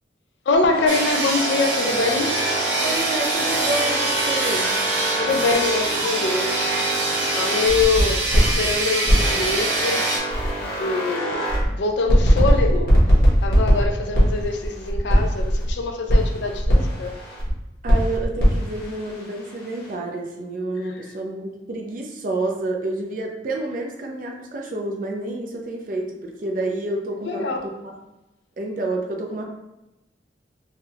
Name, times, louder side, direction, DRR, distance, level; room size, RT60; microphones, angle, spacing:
voice 1, 0.5-2.4 5.2-6.7 7.2-10.0 10.8-12.9 13.4-17.2 20.9-21.0 27.3-27.6, left 3 dB, 70° left, 3 dB, 0.4 m, -24 dB
sound 1, 0.7-8.6 9.0-11.7 12.1-15.7 16.1-17.5 17.9-19.9, equal, 55° left, 1.0 m, -22 dB
sound 2, 0.9-10.2, right 2 dB, 80° right, 0.7 m, -25 dB
voice 2, 2.8-4.8 11.7-11.8 17.8-28.0 28.6-29.4, right 2 dB, 45° right, 1 dB, 0.4 m, -29 dB
3.4 x 2.2 x 2.8 m, 0.96 s
head